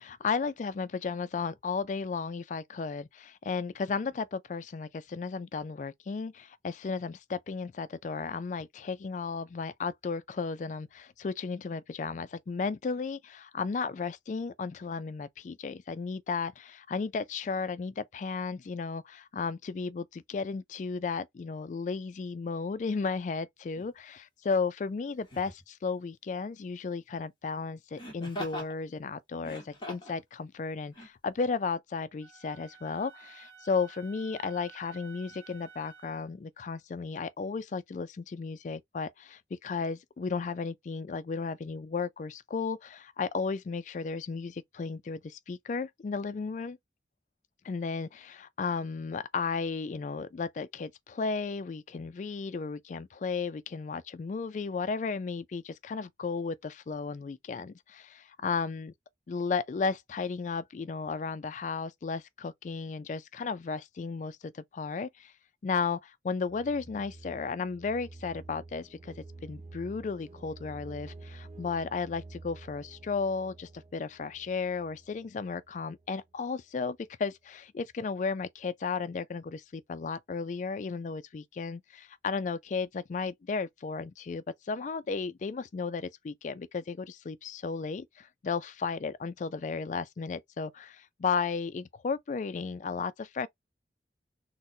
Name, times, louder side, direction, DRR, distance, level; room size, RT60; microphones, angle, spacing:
voice 1, 0.0-46.8 47.6-58.9 59.3-65.3 65.6-93.5, left 4 dB, 45° left, 0.3 m, -34 dB
Laughter, 23.8-23.9 25.2-25.6 28.0-28.7 29.4-30.2 30.9-31.1, equal, 25° left, 1.3 m, -41 dB
Wind instrument woodwind instrument, 32.2-36.3, right 6 dB, 85° right, 0.6 m, -52 dB
sound 1, 66.5-76.3, right 3 dB, 35° right, 0.4 m, -49 dB
3.9 x 2.1 x 2.6 m
head